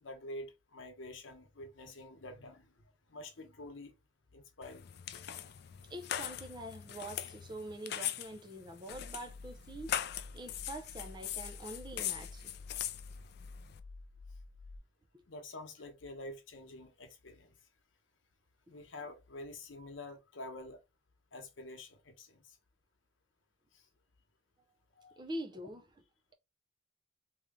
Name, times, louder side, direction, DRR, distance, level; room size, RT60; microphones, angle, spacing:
voice 1, 0.0-3.9 4.3-5.3 15.3-17.6 18.7-20.8 21.3-22.6 23.7-23.8 25.0-25.2, left 1 dB, 80° left, 1.0 m, -48 dB
sound 1, 4.6-13.8, left 11 dB, 55° left, 0.4 m, -41 dB
voice 2, 5.9-10.0 10.3-12.5 25.2-25.9, right 1 dB, 25° right, 0.6 m, -45 dB
sound 2, 8.9-14.8, left 3 dB, 80° right, 0.8 m, -50 dB
3.1 x 2.8 x 3.5 m
head